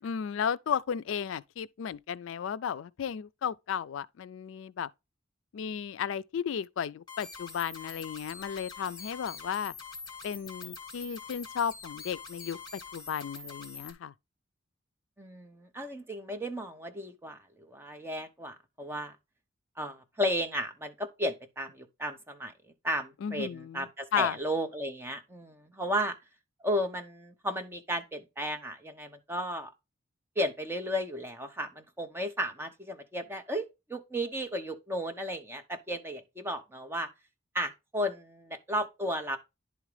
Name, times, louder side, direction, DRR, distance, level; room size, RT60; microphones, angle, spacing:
voice 1, 0.0-4.9 5.5-9.7 10.2-14.1 23.2-23.9 24.1-24.4, left 7 dB, 70° left, 0.3 m, -34 dB
sound 1, 7.1-13.9, left 5 dB, 20° left, 1.5 m, -45 dB
voice 2, 15.2-19.1 19.8-22.5 22.8-26.2 26.6-29.7 30.4-37.1 37.5-39.4, equal, 10° right, 0.8 m, -34 dB
10.5 x 3.6 x 3.2 m
head